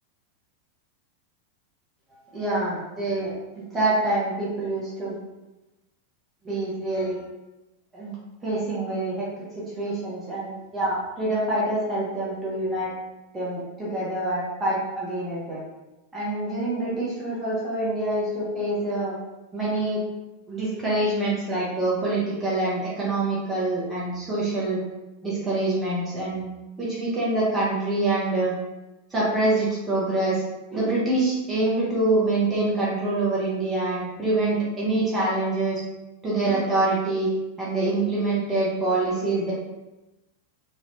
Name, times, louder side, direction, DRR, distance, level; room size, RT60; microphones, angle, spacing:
voice 1, 2.3-5.2 6.4-7.2 7.9-9.3 9.5-12.9 13.3-15.6 16.1-19.1 19.5-20.0 20.5-24.8 25.2-26.5 26.8-28.5 29.1-30.4 30.7-35.8 36.2-37.3 37.6-39.5, right 2 dB, 15° right, -8 dB, 1.0 m, -25 dB
3.1 x 2.6 x 3.3 m, 1.0 s
figure-of-eight pair, 90°, 0 cm